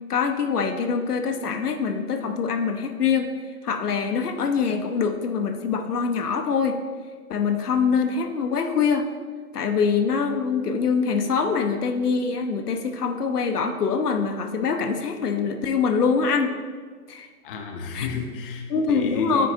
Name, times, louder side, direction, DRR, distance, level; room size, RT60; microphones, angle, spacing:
voice 1, 0.1-3.3 3.6-6.8 7.3-9.1 9.5-16.5 17.1-17.3 17.9-18.1 18.7-19.5, left 5 dB, 80° left, 6 dB, 0.8 m, -24 dB
voice 2, 17.4-19.5, left 4 dB, 40° left, 4 dB, 0.5 m, -31 dB
9.3 x 3.7 x 2.8 m, 1.5 s
hypercardioid pair, 135°, 46 cm